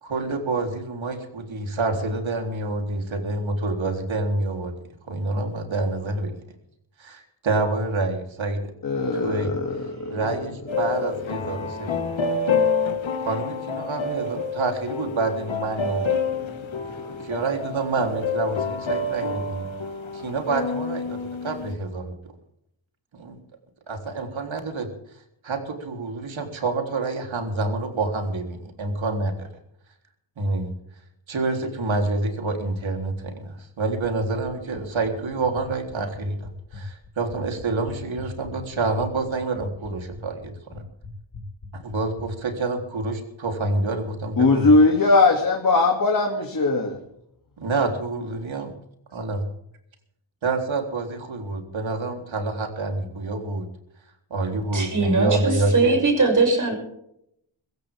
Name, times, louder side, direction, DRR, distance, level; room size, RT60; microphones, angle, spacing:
voice 1, 0.0-4.7 5.1-6.3 7.0-8.7 9.1-9.5 10.1-12.1 13.2-16.1 17.2-19.7 20.1-22.2 23.1-23.4 23.9-24.9 25.4-29.5 30.4-30.7 31.3-40.8 41.7-44.7 47.6-48.7 49.1-49.4 50.4-53.7 54.3-56.0, right 3 dB, 80° right, 3 dB, 3.7 m, -27 dB
voice 2, 8.8-10.2 16.3-16.6 16.9-17.1 44.4-47.0, left 3 dB, 45° left, 1 dB, 2.6 m, -20 dB
sound 1, 10.7-21.7, left 4 dB, 80° left, 2.0 m, -28 dB
sound 2, 33.9-42.3, left 3 dB, 60° left, 3.0 m, -41 dB
voice 3, 54.7-56.7, right 3 dB, 40° right, 2 dB, 7.0 m, -20 dB
22.5 x 16.0 x 3.7 m, 0.75 s
wide cardioid pair, 130°, 46 cm